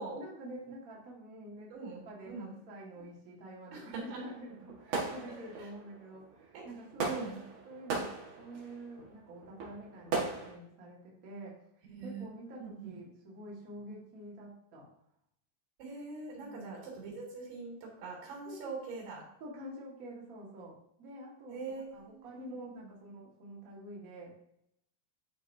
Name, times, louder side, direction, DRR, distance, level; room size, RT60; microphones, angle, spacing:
voice 1, 0.1-7.2 7.6-11.6 12.0-14.9 16.4-16.8 18.4-18.6 19.4-21.6 21.9-24.3, right 1 dB, 75° right, -4 dB, 0.8 m, -48 dB
voice 2, 1.7-2.6 3.7-4.2 5.3-5.4 6.5-6.7 7.1-7.4 11.9-12.2 12.6-13.0 15.8-19.2 21.5-22.9, right 4 dB, 90° right, -3 dB, 4.3 m, -43 dB
sound 1, 4.1-10.5, right 4 dB, 55° right, 2.3 m, -39 dB
11.0 x 4.6 x 2.7 m, 0.76 s
omnidirectional pair, 4.5 m